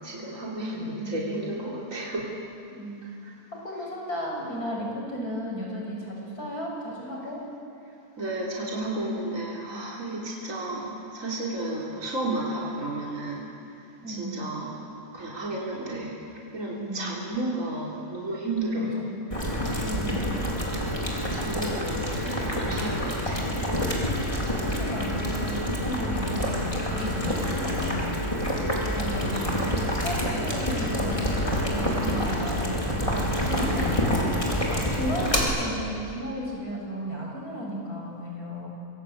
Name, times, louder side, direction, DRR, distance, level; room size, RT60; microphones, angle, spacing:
voice 1, 0.0-2.4 3.0-3.3 8.2-14.8 15.1-16.2 16.5-19.1 21.3-23.6 28.6-28.9 29.3-29.5, right 1 dB, 50° right, -4 dB, 4.2 m, -33 dB
voice 2, 0.8-1.3 2.7-3.1 3.5-7.4 10.4-10.5 14.0-14.4 16.7-17.1 18.8-19.2 19.8-20.4 24.6-28.2 28.9-34.1 34.7-38.7, equal, 70° left, -2 dB, 7.2 m, -34 dB
Boiling, 19.3-35.4, equal, 20° left, 4.6 m, -27 dB
26.0 x 23.0 x 8.8 m, 2.6 s
omnidirectional pair, 1.7 m